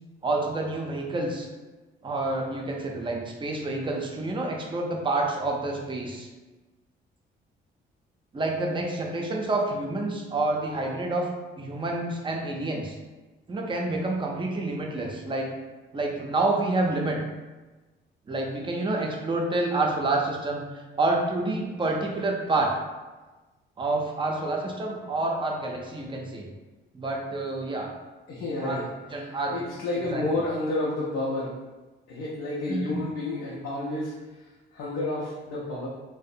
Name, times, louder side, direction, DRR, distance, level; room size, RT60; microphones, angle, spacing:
voice 1, 0.2-1.5 2.0-6.3 8.3-11.3 11.6-13.0 13.5-15.5 15.9-17.2 18.3-20.6 21.0-22.7 23.8-26.5 26.9-27.9 28.6-29.6 30.1-30.2 32.7-33.0, right 2 dB, 25° right, 0 dB, 0.5 m, -28 dB
voice 2, 28.3-28.8 29.5-31.5 32.1-34.1 34.7-35.9, left 2 dB, 85° left, -7 dB, 0.5 m, -30 dB
2.5 x 2.0 x 2.6 m, 1.2 s
cardioid pair, 90°, 20 cm